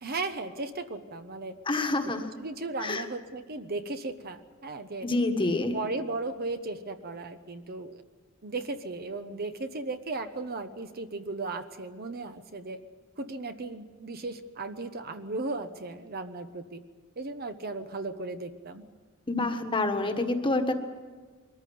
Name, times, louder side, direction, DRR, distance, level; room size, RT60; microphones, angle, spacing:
voice 1, 0.0-1.6 2.0-5.1 5.7-8.0 8.4-12.8 13.2-16.8 17.2-18.8, right 3 dB, 50° right, 8 dB, 1.1 m, -36 dB
voice 2, 1.7-2.3 2.8-3.0 5.0-5.8 19.3-20.7, left 2 dB, 25° left, 5 dB, 1.6 m, -27 dB
22.5 x 14.0 x 9.4 m, 1.5 s
head